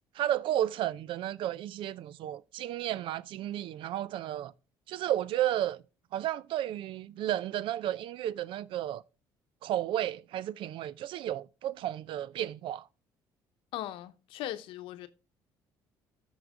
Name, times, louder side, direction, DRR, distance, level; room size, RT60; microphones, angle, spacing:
voice 1, 0.1-4.5 4.9-5.8 6.1-9.0 9.6-12.8, right 12 dB, 65° right, 0.5 m, -33 dB
voice 2, 13.7-15.1, left 13 dB, 75° left, 0.8 m, -38 dB
13.0 x 4.9 x 3.6 m
supercardioid pair, 65°, 9 cm